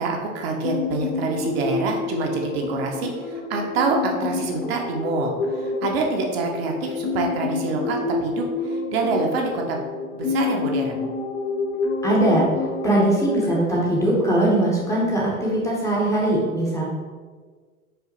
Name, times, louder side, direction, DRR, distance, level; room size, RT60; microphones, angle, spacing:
voice 1, 0.0-9.8 10.1-11.0, right 3 dB, 45° right, 1 dB, 0.6 m, -26 dB
sound 1, 0.6-15.0, left 4 dB, 75° left, 0.9 m, -28 dB
voice 2, 12.0-12.5 12.8-16.8, right 1 dB, 5° left, -5 dB, 0.6 m, -21 dB
4.8 x 2.5 x 2.9 m, 1.5 s
hypercardioid pair, 110°, 44 cm